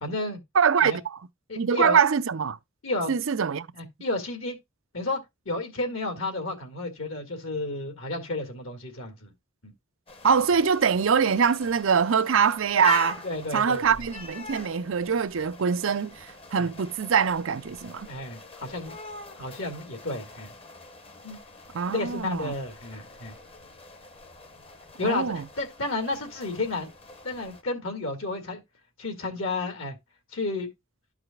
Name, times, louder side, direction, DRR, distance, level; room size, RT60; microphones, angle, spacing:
voice 1, 0.0-0.4 0.8-1.0 1.5-2.0 2.8-3.1 3.7-4.6 4.9-9.3 9.6-9.7 13.2-13.8 18.1-19.0 19.4-20.5 21.2-21.4 21.9-23.4 25.0-26.9 27.2-28.6 29.0-30.0 30.3-30.7, left 2 dB, 65° left, 2.0 m, -31 dB
voice 2, 0.5-1.2 1.6-2.6 3.1-3.7 10.2-13.2 13.5-18.1 21.7-22.5 25.0-25.4, right 6 dB, 65° right, 0.5 m, -23 dB
sound 1, 10.1-27.6, left 2 dB, 25° left, 0.9 m, -42 dB
12.5 x 4.8 x 2.4 m
head